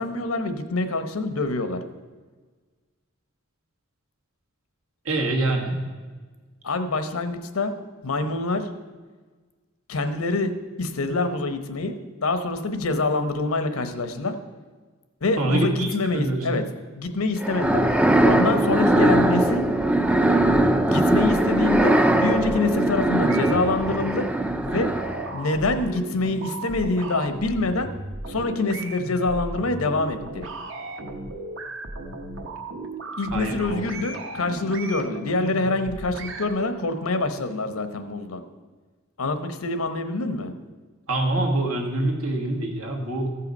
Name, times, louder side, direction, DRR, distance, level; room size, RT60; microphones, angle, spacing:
voice 1, 0.0-1.8 6.6-7.7 8.0-8.7 9.9-10.5 10.8-12.0 12.2-14.4 15.2-16.6 16.9-17.8 18.2-19.6 20.9-24.3 24.6-24.9 25.3-27.9 28.3-30.4 33.2-38.4 39.2-40.5, left 2 dB, 90° left, 9 dB, 0.9 m, -25 dB
voice 2, 5.0-5.8 15.4-16.6 33.3-33.8 41.1-43.3, right 2 dB, 85° right, 2 dB, 1.6 m, -25 dB
sound 1, 17.4-25.4, right 1 dB, 5° right, 0.3 m, -20 dB
sound 2, 19.3-36.5, right 2 dB, 65° right, 1.0 m, -36 dB
14.5 x 5.7 x 5.3 m, 1.4 s
head